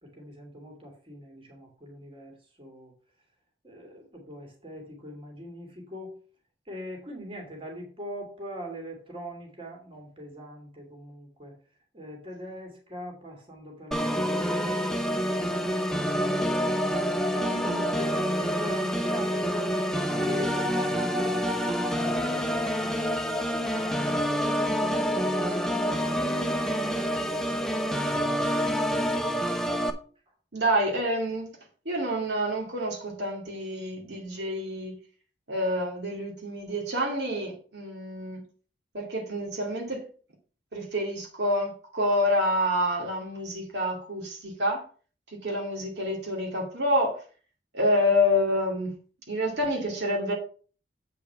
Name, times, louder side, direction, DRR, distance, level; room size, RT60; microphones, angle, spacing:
voice 1, 0.0-2.9 3.6-6.1 6.7-11.6 11.9-16.7 17.3-24.2 24.6-29.2, equal, 30° right, 2.6 m, -41 dB
Organ, 13.9-29.9, equal, 5° left, 0.7 m, -27 dB
voice 2, 30.5-31.5 31.9-35.0 35.5-38.4 38.9-40.1 40.7-44.8 45.3-47.2 47.7-48.9 49.3-50.3, equal, 75° right, 2.4 m, -28 dB
8.3 x 5.0 x 5.6 m
head